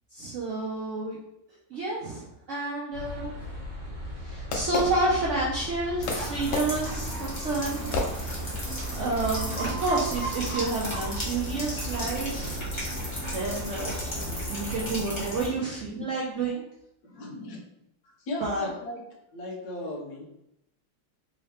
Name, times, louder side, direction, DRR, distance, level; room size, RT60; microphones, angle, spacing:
voice 1, 0.1-1.2 1.7-3.3 4.2-8.4 8.9-12.6 13.3-13.9 14.3-16.7 18.4-18.7, right 2 dB, 90° right, -4 dB, 0.6 m, -30 dB
sound 1, 2.9-14.9, equal, 65° right, 1.7 m, -38 dB
Fireworks, 3.4-5.6 6.1-8.8, left 3 dB, 85° left, 1.5 m, -34 dB
sound 2, 6.0-15.5, right 1 dB, 30° left, 0.6 m, -34 dB
voice 2, 17.0-17.6 18.0-19.0 19.3-20.2, left 1 dB, 65° left, 0 dB, 1.2 m, -37 dB
3.7 x 2.8 x 3.2 m, 0.83 s
omnidirectional pair, 2.1 m